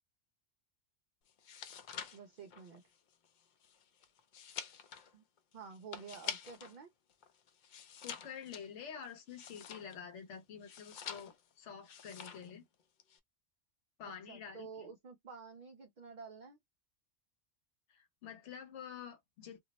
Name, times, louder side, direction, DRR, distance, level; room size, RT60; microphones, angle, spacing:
sound 1, 1.3-6.8 7.1-10.1 10.6-11.5 11.8-12.5 12.8-13.2, left 7 dB, 60° left, 0.5 m, -47 dB
voice 1, 2.1-2.8 5.1-5.2 5.5-6.9 14.0-16.6, right 5 dB, 50° right, 0.6 m, -50 dB
voice 2, 8.0-12.6 14.0-14.9 17.9-19.6, left 7 dB, 80° left, 1.1 m, -48 dB
2.6 x 2.0 x 3.9 m
omnidirectional pair, 1.2 m